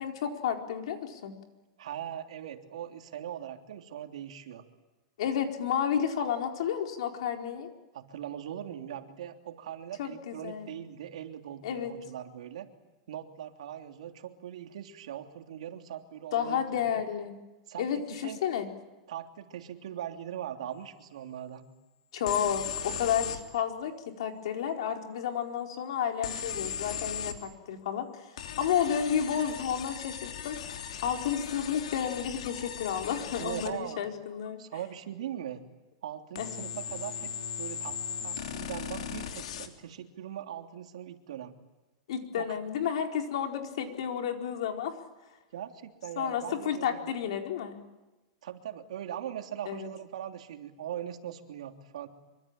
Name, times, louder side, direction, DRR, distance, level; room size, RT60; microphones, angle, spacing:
voice 1, 0.0-1.3 5.2-7.7 10.0-10.8 11.6-11.9 16.3-17.3 17.8-18.7 22.1-34.6 36.4-36.5 42.1-44.9 46.2-47.8 49.7-49.9, left 8 dB, 60° left, 3 dB, 4.5 m, -31 dB
voice 2, 1.8-4.6 7.9-12.7 13.1-17.0 17.7-17.9 18.2-18.4 19.1-21.6 33.4-34.0 34.6-35.6 36.0-41.5 42.3-42.6 45.5-47.1 48.4-52.1, right 10 dB, 80° right, 5 dB, 3.2 m, -40 dB
sound 1, 22.3-23.4 26.2-27.4 28.4-33.7 36.4-39.7, left 8 dB, 85° left, 3.2 m, -38 dB
25.5 x 25.0 x 8.9 m, 1.1 s
supercardioid pair, 180°, 3 cm